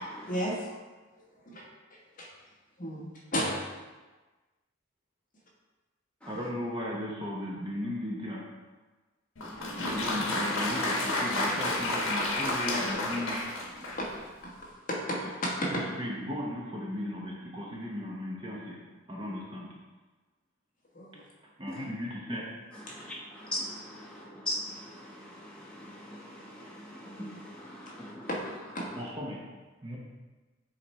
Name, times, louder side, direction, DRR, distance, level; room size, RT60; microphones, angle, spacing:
voice 1, 0.3-0.6 1.5-1.6 2.2-2.3 2.8-3.5 14.0-14.1 14.4-14.5 14.9-15.7 20.9-21.2 28.3-28.4 28.7-28.9, equal, 40° left, -3 dB, 1.2 m, -32 dB
voice 2, 6.3-8.4 9.8-13.4 15.6-18.8 19.1-19.7 21.6-22.4 29.0-29.4 29.8-30.0, left 1 dB, 20° right, -3 dB, 0.8 m, -36 dB
Applause, 9.4-14.2, left 1 dB, 75° left, 1.2 m, -31 dB
voice 3, 9.6-9.9 22.9-28.3, left 1 dB, 5° left, -6 dB, 1.0 m, -40 dB
7.4 x 3.3 x 4.2 m, 1.3 s
head